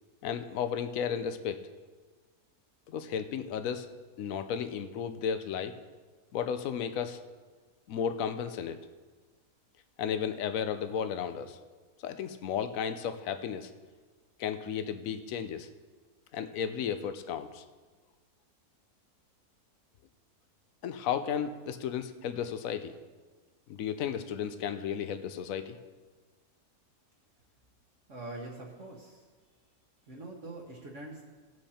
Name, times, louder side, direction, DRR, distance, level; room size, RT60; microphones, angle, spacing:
voice 1, 0.2-1.6 2.9-3.9 4.2-5.8 6.3-7.2 7.9-8.8 10.0-11.6 12.0-13.7 14.4-15.7 16.3-17.6 20.8-22.9 23.7-25.8, left 8 dB, 65° left, 10 dB, 1.0 m, -34 dB
voice 2, 28.1-29.2 30.1-31.2, right 2 dB, 50° right, -2 dB, 1.5 m, -43 dB
18.0 x 6.3 x 4.3 m, 1.4 s
omnidirectional pair, 1.7 m